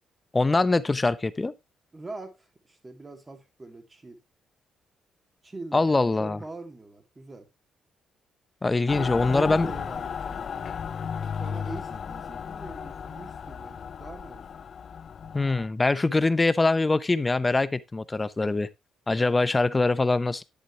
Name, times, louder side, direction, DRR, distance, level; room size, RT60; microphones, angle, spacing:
voice 1, 0.3-1.5 5.7-6.4 8.6-9.7 15.3-18.7 19.1-20.4, left 3 dB, 20° left, 0.8 m, -23 dB
voice 2, 1.9-4.2 5.4-5.9 6.2-7.5 8.9-10.7 11.3-14.5 19.2-19.4, right 2 dB, 25° right, 2.7 m, -42 dB
Mechanical fan, 8.9-15.7, left 7 dB, 50° left, 0.4 m, -35 dB
10.5 x 8.0 x 3.0 m
cardioid pair, 90°, 0 cm